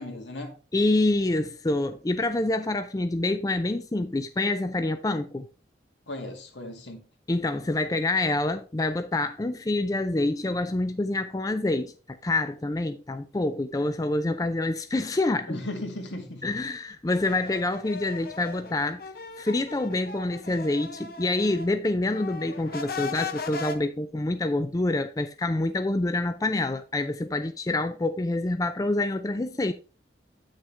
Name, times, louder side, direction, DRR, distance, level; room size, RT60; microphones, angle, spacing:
voice 1, 0.0-0.5 6.1-7.1 15.5-16.6, left 1 dB, 80° left, 2.1 m, -36 dB
voice 2, 0.7-5.5 7.3-15.6 16.4-19.0 19.4-29.7, left 2 dB, 20° left, 0.4 m, -27 dB
sound 1, 17.1-21.7 22.0-23.7, left 4 dB, 55° left, 0.9 m, -38 dB
9.0 x 6.5 x 3.3 m
head